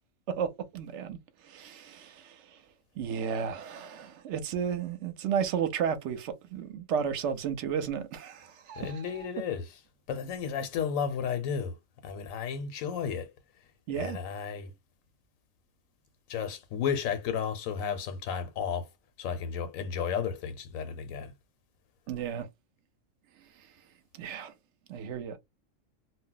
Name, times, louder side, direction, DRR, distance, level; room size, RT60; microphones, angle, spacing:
voice 1, 0.3-1.2 1.5-2.4 3.0-9.3 13.9-14.2 22.1-22.5 24.2-24.5 24.9-25.4, right 7 dB, 70° right, 0.8 m, -33 dB
voice 2, 8.8-9.8 10.1-11.7 12.0-13.3 13.9-14.7 16.3-18.9 19.2-21.3, left 7 dB, 85° left, 1.0 m, -33 dB
2.3 x 2.0 x 3.8 m
omnidirectional pair, 1.4 m